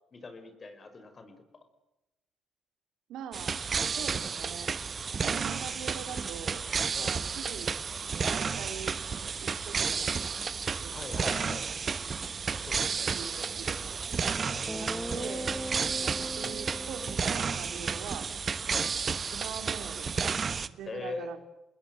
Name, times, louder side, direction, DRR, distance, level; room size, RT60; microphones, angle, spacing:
voice 1, 0.1-1.5 6.9-7.2 10.9-11.7 12.5-13.1 14.4-14.7 16.4-16.6 18.7-19.0 20.9-21.3, left 3 dB, 40° left, 10 dB, 5.4 m, -42 dB
voice 2, 3.1-3.6 3.9-4.7 5.2-6.7 7.0-7.7 8.1-10.5 10.8-11.7 12.8-13.9 14.7-15.5 16.0-18.3 19.3-20.1 20.8-21.4, right 8 dB, 85° right, 7 dB, 3.3 m, -43 dB
sound 1, 3.3-20.7, right 5 dB, 40° right, 1.2 m, -32 dB
Guitar, 14.1-14.2 14.7-18.8, equal, 5° right, 1.7 m, -40 dB
27.5 x 20.5 x 7.9 m, 0.92 s
cardioid pair, 90°, 0 cm